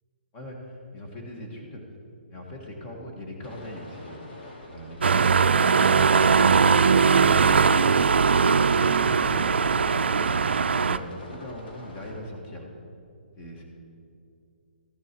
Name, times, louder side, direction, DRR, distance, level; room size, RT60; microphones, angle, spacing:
voice 1, 0.3-1.8 2.3-4.2 4.7-8.1 8.7-12.7 13.4-13.6, left 1 dB, 20° left, 0 dB, 1.6 m, -40 dB
sound 1, 3.4-12.1, left 1 dB, 65° left, 2.6 m, -45 dB
sound 2, 5.0-11.0, right 5 dB, 85° right, 0.4 m, -20 dB
14.0 x 6.8 x 4.5 m, 2.5 s
hypercardioid pair, 155°, 6 cm